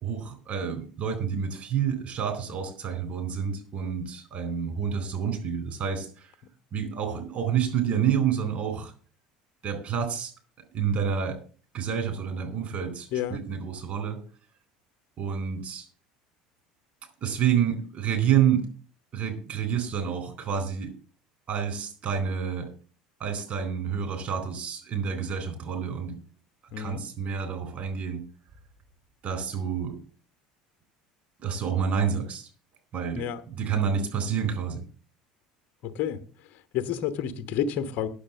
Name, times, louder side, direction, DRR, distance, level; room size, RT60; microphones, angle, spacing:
voice 1, 0.0-6.3 6.7-8.9 9.6-10.3 10.7-11.4 11.7-14.2 15.2-15.9 17.2-18.7 19.1-20.9 21.5-22.7 23.2-26.2 26.8-28.2 29.2-30.0 31.4-32.5 32.9-34.8, right 7 dB, 40° right, 4.0 m, -28 dB
voice 2, 36.7-38.1, left 9 dB, 50° left, 1.1 m, -29 dB
10.0 x 7.1 x 7.3 m
figure-of-eight pair, 65°, 4 cm